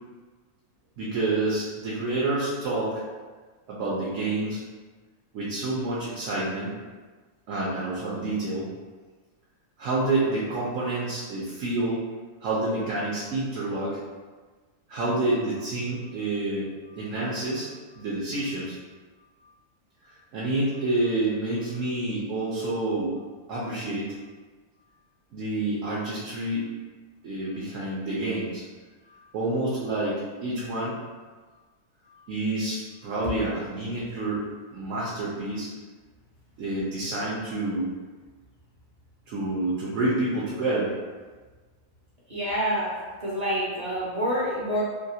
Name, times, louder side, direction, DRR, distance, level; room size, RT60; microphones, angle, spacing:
voice 1, 1.0-3.0 3.7-4.6 5.3-6.8 7.5-8.7 9.8-12.1 12.4-14.0 14.9-16.7 17.0-17.7 18.0-18.8 20.3-23.2 23.5-24.1 25.3-26.7 27.2-28.6 29.1-31.0 32.3-34.5 34.7-35.7 36.6-37.9 39.3-40.9, right 2 dB, 70° right, -6 dB, 0.9 m, -28 dB
voice 2, 42.3-42.9 43.2-44.8, equal, 40° right, -9 dB, 0.6 m, -27 dB
2.8 x 2.3 x 2.7 m, 1.4 s
omnidirectional pair, 1.4 m